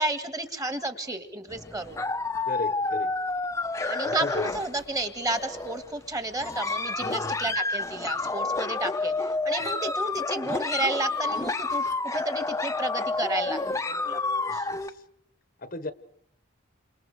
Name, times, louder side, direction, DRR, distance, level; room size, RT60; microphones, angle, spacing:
voice 1, 0.0-2.0 3.8-9.1 9.4-11.8 12.1-13.6 13.9-14.2 14.5-14.6, right 2 dB, 15° right, 10 dB, 1.7 m, -31 dB
sound 1, 1.5-5.0 5.3-5.9 6.4-14.9, left 3 dB, 15° left, 0.8 m, -29 dB
voice 2, 2.5-3.1 4.0-4.5 7.0-7.6 14.5-14.9 15.6-15.9, left 3 dB, 45° left, 13 dB, 1.1 m, -35 dB
29.0 x 27.0 x 4.8 m, 0.72 s
head